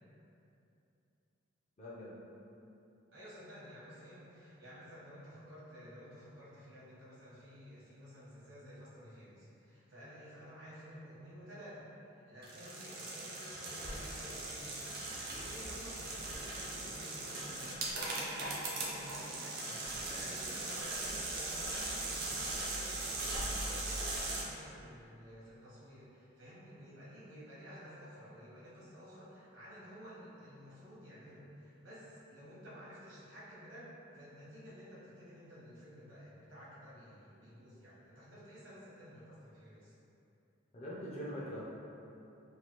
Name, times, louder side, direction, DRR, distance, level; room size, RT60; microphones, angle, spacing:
voice 1, 1.8-2.1 40.7-41.6, equal, 30° left, -7 dB, 0.5 m, -42 dB
voice 2, 3.1-39.9, equal, 70° right, -9 dB, 1.0 m, -52 dB
sound 1, 12.4-24.4, right 2 dB, 50° right, 0.5 m, -39 dB
3.2 x 2.3 x 2.9 m, 2.8 s
head